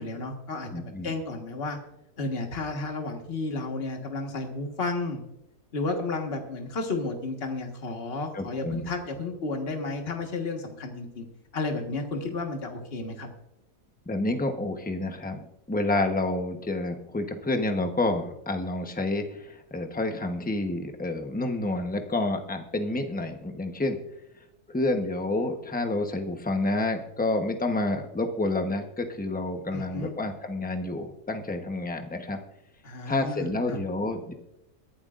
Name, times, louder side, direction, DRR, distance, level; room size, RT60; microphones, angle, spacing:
voice 1, 0.0-1.8 2.2-5.2 5.7-11.2 11.5-13.3 29.7-30.1 32.8-33.8, left 3 dB, 40° left, 3 dB, 1.7 m, -32 dB
voice 2, 0.7-1.1 8.3-8.9 14.1-15.4 15.7-24.0 24.7-32.4 33.0-34.3, left 2 dB, 5° left, 5 dB, 0.8 m, -29 dB
22.5 x 11.5 x 2.5 m, 0.88 s
omnidirectional pair, 1.7 m